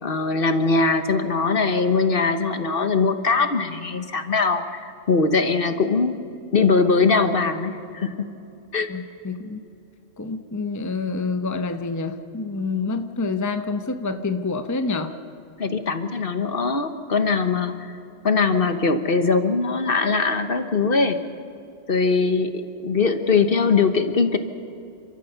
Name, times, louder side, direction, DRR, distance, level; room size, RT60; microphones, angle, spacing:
voice 1, 0.0-6.1 6.5-8.3 8.7-8.9 15.6-18.0 18.2-21.2 21.9-24.4, left 4 dB, 45° left, 9 dB, 1.2 m, -21 dB
voice 2, 8.9-9.6 10.2-15.1, left 3 dB, 15° left, 7 dB, 0.8 m, -27 dB
29.5 x 13.5 x 6.8 m, 2.7 s
omnidirectional pair, 1.3 m